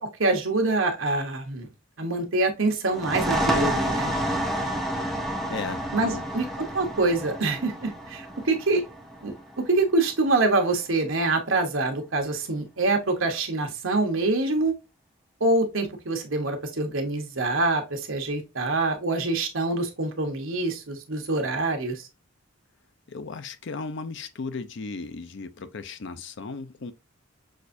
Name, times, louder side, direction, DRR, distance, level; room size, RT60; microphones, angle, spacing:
voice 1, 0.0-1.7 2.0-4.1 5.9-6.4 6.7-8.8 9.2-9.3 9.7-14.7 15.4-22.1, right 2 dB, 75° right, 1.2 m, -25 dB
sound 1, 2.9-10.3, right 1 dB, ahead, 0.7 m, -29 dB
voice 2, 5.5-6.2 23.1-26.9, left 4 dB, 60° left, 0.6 m, -36 dB
6.3 x 2.6 x 2.6 m
head